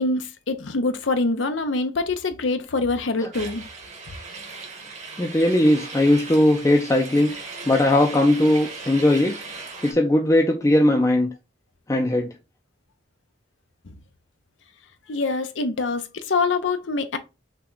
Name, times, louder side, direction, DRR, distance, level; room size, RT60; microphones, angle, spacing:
voice 1, 0.0-3.7 13.9-14.0 15.1-17.2, left 3 dB, 90° left, 0.7 m, -25 dB
sound 1, 3.3-9.9, right 4 dB, 40° right, 1.2 m, -38 dB
voice 2, 5.2-7.3 7.7-9.4 9.8-11.3 11.9-12.3, left 1 dB, 15° left, 0.4 m, -19 dB
5.8 x 2.3 x 3.8 m
head